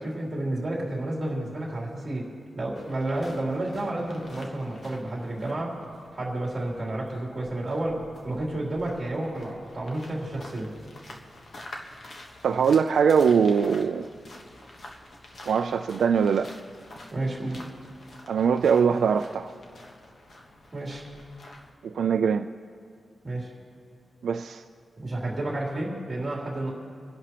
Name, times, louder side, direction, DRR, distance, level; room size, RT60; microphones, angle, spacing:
voice 1, 0.0-5.8 6.1-10.7 17.1-17.6 20.7-21.0 23.2-23.5 25.0-26.7, right 1 dB, 25° right, -4 dB, 3.1 m, -31 dB
sound 1, 2.7-21.7, left 1 dB, 40° left, 1.2 m, -48 dB
voice 2, 12.4-14.1 15.5-16.5 18.3-19.5 21.8-22.5 24.2-24.6, right 6 dB, 75° right, 7 dB, 0.4 m, -22 dB
29.5 x 11.0 x 3.0 m, 2.3 s
wide cardioid pair, 170°, 0 cm